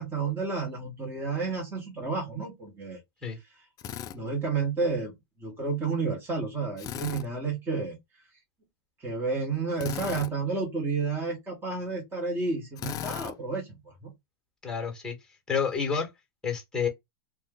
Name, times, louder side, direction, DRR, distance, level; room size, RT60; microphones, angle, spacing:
voice 1, 0.0-3.0 4.1-5.1 5.4-8.0 9.0-14.1, right 4 dB, 15° right, 1.1 m, -31 dB
Drill, 3.8-4.2 6.8-7.3 9.8-10.3 12.8-13.3, left 11 dB, 30° left, 0.3 m, -36 dB
voice 2, 14.6-15.2 15.5-16.1 16.4-16.9, left 6 dB, 5° left, 1.2 m, -29 dB
2.5 x 2.2 x 3.7 m
hypercardioid pair, 120°, 13 cm